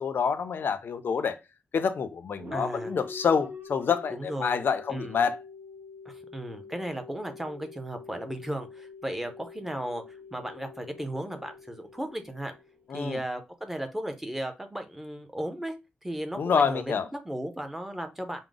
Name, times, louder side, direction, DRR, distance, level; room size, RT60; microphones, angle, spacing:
voice 1, 0.0-1.4 1.7-5.4 12.9-13.2 16.4-17.1, left 6 dB, 60° left, 0.5 m, -27 dB
sound 1, 2.4-13.1, left 3 dB, 55° right, 1.1 m, -45 dB
voice 2, 2.5-2.9 4.1-4.6 4.9-5.2 6.1-12.5 12.9-15.7 16.0-18.4, right 1 dB, 5° right, 0.6 m, -35 dB
4.8 x 2.0 x 3.8 m
wide cardioid pair, 180°, 4 cm